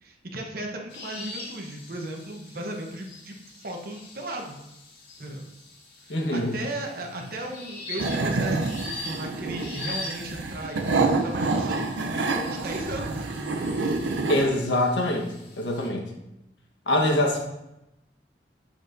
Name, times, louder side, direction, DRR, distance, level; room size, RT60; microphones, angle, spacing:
voice 1, 0.0-4.6 5.2-5.5 6.1-13.3 17.2-17.3, right 1 dB, 55° right, 1 dB, 1.0 m, -36 dB
sound 1, 0.9-15.9, left 3 dB, 60° left, 2.0 m, -43 dB
voice 2, 6.1-6.5 14.3-15.2 15.6-16.0 16.9-17.4, left 1 dB, 90° left, 2 dB, 1.3 m, -23 dB
sound 2, 8.0-14.4, right 3 dB, 90° right, 0.6 m, -27 dB
7.9 x 7.0 x 2.6 m, 0.90 s
head